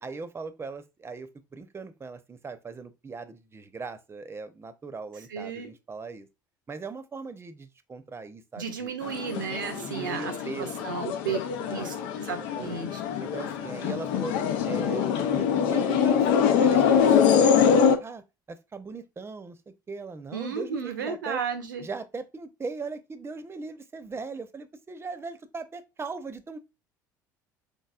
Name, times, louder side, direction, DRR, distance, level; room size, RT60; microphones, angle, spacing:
voice 1, 0.0-6.3 6.7-8.9 9.9-10.9 11.2-11.9 12.3-12.9 13.2-14.4 14.7-18.2 18.5-21.4 21.8-26.6, right 4 dB, 25° right, 0.8 m, -39 dB
voice 2, 5.3-5.7 8.6-11.4 11.7-13.0 20.3-21.9, right 6 dB, 85° right, 0.9 m, -34 dB
sound 1, 9.0-18.0, left 7 dB, 65° left, 0.7 m, -24 dB
5.4 x 3.9 x 2.4 m
hypercardioid pair, 65°, 10 cm